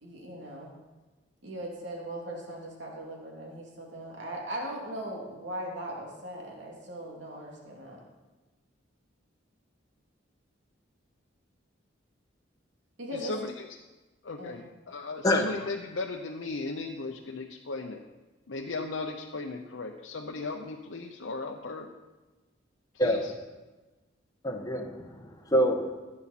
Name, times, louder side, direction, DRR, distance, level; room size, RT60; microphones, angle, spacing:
voice 1, 0.0-0.7 1.4-8.0 13.0-13.4 14.4-14.6, right 1 dB, 70° right, -2 dB, 2.7 m, -39 dB
voice 2, 13.1-13.5 14.2-18.0 18.5-21.9 23.0-23.2, left 3 dB, 85° left, 1 dB, 0.8 m, -36 dB
voice 3, 24.4-25.9, equal, 20° left, 2 dB, 1.2 m, -26 dB
15.5 x 8.6 x 4.3 m, 1.2 s
head